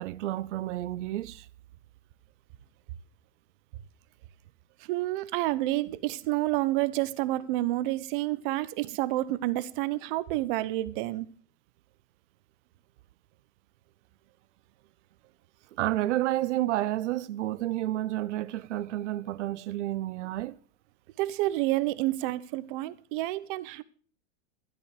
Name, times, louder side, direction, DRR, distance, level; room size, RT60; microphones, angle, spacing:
voice 1, 0.0-1.5 15.8-20.6, right 15 dB, 85° right, 0.6 m, -30 dB
voice 2, 4.9-11.3 21.2-23.8, right 17 dB, 50° right, 1.0 m, -29 dB
12.5 x 11.5 x 4.9 m
supercardioid pair, 150°, 34 cm